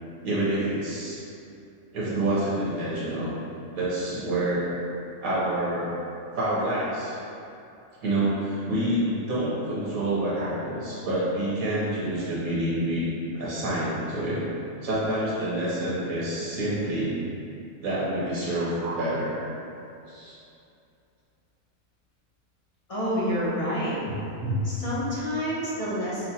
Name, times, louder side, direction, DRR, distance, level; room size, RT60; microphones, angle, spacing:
voice 1, 0.2-1.2 1.9-3.3 3.7-4.7 5.2-5.9 6.3-7.1 8.0-13.1 13.3-14.5 14.8-17.1 17.8-19.4 20.1-20.4 24.1-24.5, right 1 dB, 90° right, -9 dB, 1.5 m, -27 dB
voice 2, 22.9-24.0 24.6-26.2, equal, 40° left, -8 dB, 0.5 m, -28 dB
5.7 x 2.1 x 2.8 m, 2.6 s
omnidirectional pair, 1.4 m